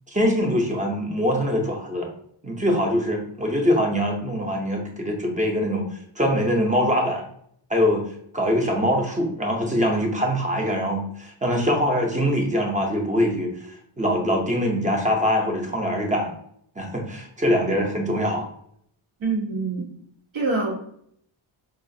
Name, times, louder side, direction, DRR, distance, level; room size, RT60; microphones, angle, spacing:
voice 1, 0.1-2.1 2.4-5.9 6.2-7.2 7.7-8.1 8.3-13.5 14.0-16.3 16.8-18.5, equal, 15° right, 1 dB, 0.6 m, -23 dB
voice 2, 19.2-19.9 20.3-20.7, right 3 dB, 75° right, 0 dB, 1.0 m, -25 dB
4.8 x 2.4 x 2.6 m, 0.67 s
wide cardioid pair, 155°, 48 cm